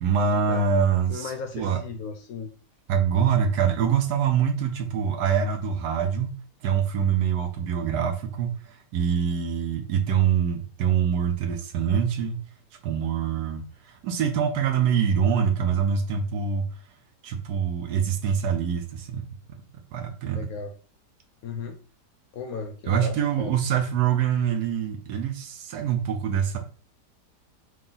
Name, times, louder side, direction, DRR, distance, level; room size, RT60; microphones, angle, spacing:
voice 1, 0.0-1.8 2.9-6.3 6.6-12.4 12.8-16.7 17.2-19.3 19.9-20.5 22.9-26.6, right 7 dB, 75° right, 5 dB, 1.1 m, -25 dB
voice 2, 1.1-2.5 20.3-20.7 21.4-21.8 22.3-23.5, left 5 dB, 70° left, 5 dB, 0.9 m, -35 dB
3.8 x 2.3 x 3.9 m, 0.38 s
omnidirectional pair, 1.8 m